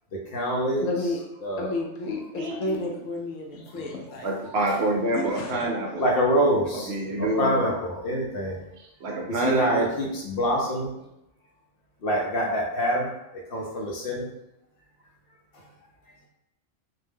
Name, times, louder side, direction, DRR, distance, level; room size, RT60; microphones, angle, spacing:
voice 1, 0.3-0.9 1.4-1.7 4.4-4.5 6.0-8.6 9.0-10.9 12.0-14.3 15.5-15.7, equal, 60° left, -2 dB, 0.7 m, -26 dB
voice 2, 0.8-1.2 1.6-4.3 5.1-5.7, left 2 dB, 85° left, 1 dB, 1.0 m, -31 dB
voice 3, 2.3-3.0 4.2-6.0 6.9-7.7 9.0-9.9, right 2 dB, 65° right, 0 dB, 0.8 m, -27 dB
2.6 x 2.1 x 3.4 m, 0.86 s
omnidirectional pair, 1.3 m